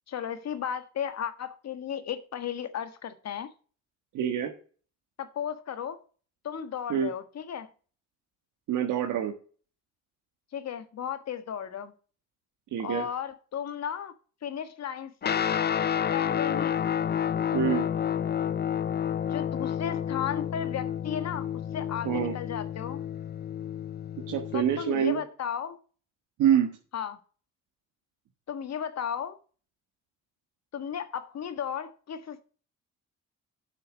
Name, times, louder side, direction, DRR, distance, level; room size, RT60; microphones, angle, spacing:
voice 1, 0.1-3.5 5.2-6.0 6.4-7.7 10.5-11.9 12.8-14.1 14.4-15.5 16.1-16.8 19.3-21.5 21.7-23.0 24.5-25.8 26.9-27.2 28.5-29.4 30.7-32.4, left 8 dB, 60° left, 1.5 m, -35 dB
voice 2, 4.1-4.5 6.9-7.1 8.7-9.3 12.7-13.0 17.5-17.8 22.0-22.3 24.2-25.2 26.4-26.7, right 9 dB, 85° right, 1.5 m, -26 dB
Guitar, 15.2-24.9, left 9 dB, 35° left, 0.5 m, -30 dB
8.1 x 6.2 x 6.3 m
cardioid pair, 90°, 30 cm